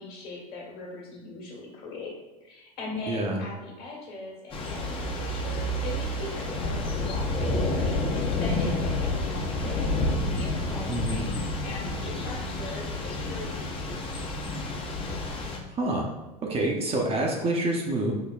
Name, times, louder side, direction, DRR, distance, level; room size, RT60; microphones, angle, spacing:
voice 1, 0.0-2.1 2.4-9.9 10.3-14.2, left 3 dB, 50° left, -3 dB, 1.4 m, -40 dB
voice 2, 3.1-3.4 10.9-11.3 15.8-16.1 16.4-18.1, right 2 dB, 30° right, 0 dB, 0.6 m, -27 dB
Thunder / Rain, 4.5-15.6, left 2 dB, 25° left, 0.6 m, -29 dB
5.0 x 2.1 x 2.3 m, 1.1 s
hypercardioid pair, 90°, 20 cm